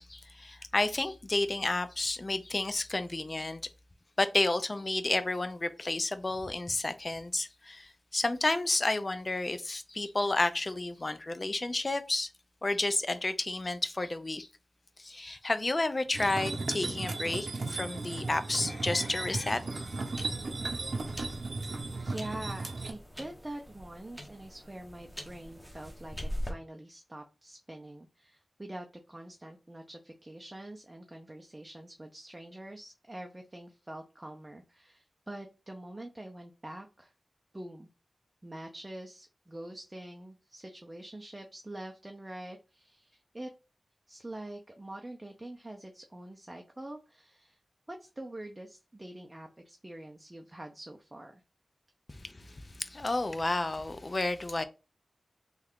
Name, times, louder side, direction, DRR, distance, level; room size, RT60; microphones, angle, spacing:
voice 1, 0.0-3.6 4.2-12.3 12.6-14.5 15.0-20.0 52.1-54.6, left 2 dB, 40° left, 0.5 m, -31 dB
sound 1, 16.1-22.9, right 3 dB, 70° right, 0.7 m, -36 dB
sound 2, 19.2-26.5, equal, ahead, 1.0 m, -43 dB
voice 2, 22.0-37.1 37.5-37.9 38.4-43.5 44.1-47.6 47.9-51.4, right 1 dB, 20° right, 0.5 m, -45 dB
3.2 x 2.3 x 3.5 m
cardioid pair, 50°, 0 cm